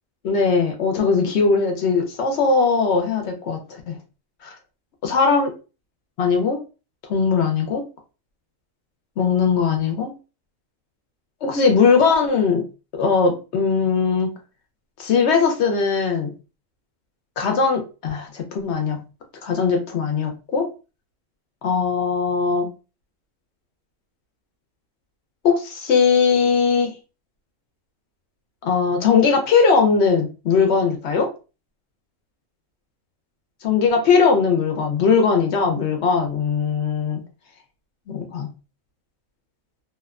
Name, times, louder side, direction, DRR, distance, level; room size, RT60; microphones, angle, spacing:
voice 1, 0.2-4.0 4.4-4.6 5.0-5.5 6.2-6.6 7.1-7.8 9.2-10.1 11.4-12.6 12.9-14.3 15.0-16.3 17.4-19.0 19.4-20.7 21.6-22.7 25.4-26.9 28.6-31.3 33.6-37.2 38.1-38.5, left 5 dB, 65° left, 3 dB, 0.7 m, -19 dB
2.7 x 2.1 x 2.3 m, 0.32 s
omnidirectional pair, 1.5 m